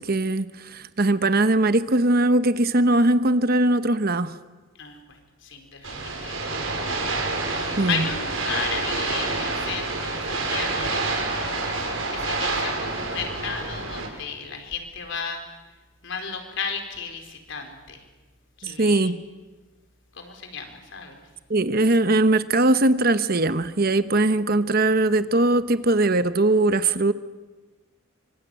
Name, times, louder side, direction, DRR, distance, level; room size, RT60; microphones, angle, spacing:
voice 1, 0.0-4.3 7.8-8.1 18.6-19.2 21.5-27.1, right 2 dB, 45° right, 1.0 m, -20 dB
voice 2, 4.8-7.0 7.5-11.8 12.1-15.4 16.0-18.0 18.6-19.1 20.1-21.2, left 5 dB, 60° left, 4.6 m, -34 dB
sound 1, 5.8-14.1, right 3 dB, 75° right, 6.4 m, -28 dB
26.0 x 25.0 x 9.2 m
head